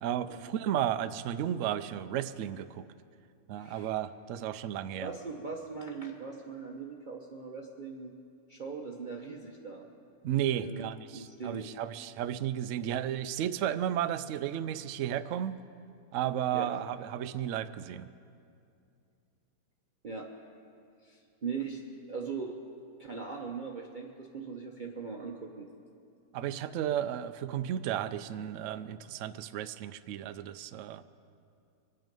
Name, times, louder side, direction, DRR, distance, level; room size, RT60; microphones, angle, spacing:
voice 1, 0.0-2.9 3.5-5.1 10.2-15.6 16.1-18.1 26.3-31.0, right 10 dB, 70° right, 11 dB, 0.7 m, -33 dB
voice 2, 3.5-3.9 5.0-8.2 8.5-9.9 10.5-11.7 16.5-16.7 20.0-20.3 21.0-22.6 23.0-25.7, right 5 dB, 35° right, 0 dB, 0.8 m, -40 dB
24.0 x 9.2 x 5.3 m, 2.4 s
omnidirectional pair, 1.7 m